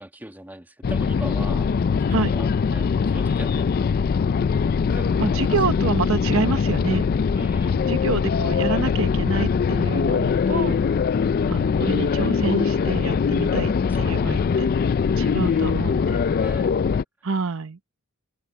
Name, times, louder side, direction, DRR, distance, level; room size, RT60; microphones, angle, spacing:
voice 1, 0.0-3.7 4.9-5.4 7.4-7.9 10.4-10.9 13.9-14.4 15.4-15.8 16.3-16.8, right 1 dB, 10° right, 1.6 m, -40 dB
sound 1, 0.8-17.0, left 6 dB, 40° left, 0.3 m, -22 dB
voice 2, 5.2-7.0 7.9-10.8 11.5-13.7 14.0-14.4 15.2-16.2 17.2-17.8, right 4 dB, 65° right, 0.8 m, -27 dB
open air
head